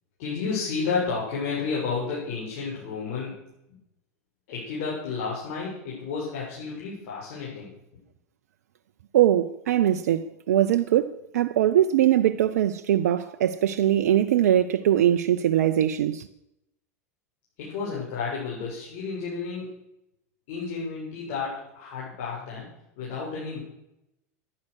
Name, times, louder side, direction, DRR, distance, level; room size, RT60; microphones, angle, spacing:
voice 1, 0.2-3.5 4.5-7.7 17.6-19.7 20.5-22.7 23.0-23.6, left 5 dB, 60° left, 6.9 m, -31 dB
voice 2, 9.1-16.3, right 11 dB, 75° right, 0.7 m, -22 dB
15.0 x 11.0 x 6.5 m
hypercardioid pair, 90°, 9 cm